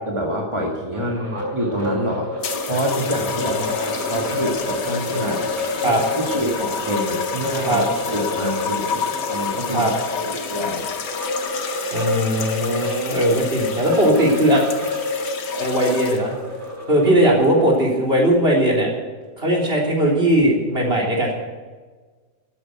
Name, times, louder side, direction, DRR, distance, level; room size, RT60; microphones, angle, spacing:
voice 1, 0.1-5.5 5.7-10.9, right 1 dB, 20° right, -1 dB, 1.7 m, -27 dB
sound 1, 0.9-17.6, left 2 dB, 80° right, 5.0 m, -28 dB
voice 2, 1.0-1.4 3.6-3.7 5.8-6.0 7.6-7.9 9.7-9.9 11.9-14.6 15.6-16.3 16.9-18.9 19.4-21.3, right 1 dB, 35° right, 0 dB, 3.8 m, -19 dB
sound 2, 2.4-16.4 17.3-17.6, left 6 dB, 90° left, 1.9 m, -30 dB
13.5 x 9.5 x 9.3 m, 1.4 s
omnidirectional pair, 1.8 m